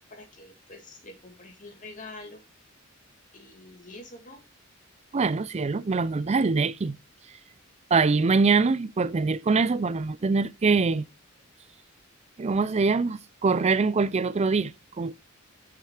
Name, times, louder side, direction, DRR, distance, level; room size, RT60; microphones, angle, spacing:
voice 1, 0.0-2.4 3.3-4.4, left 2 dB, 40° left, 2.2 m, -46 dB
voice 2, 5.1-7.0 7.9-11.1 12.4-14.7 15.0-15.1, right 4 dB, 30° right, 0.4 m, -23 dB
6.8 x 5.5 x 6.4 m
head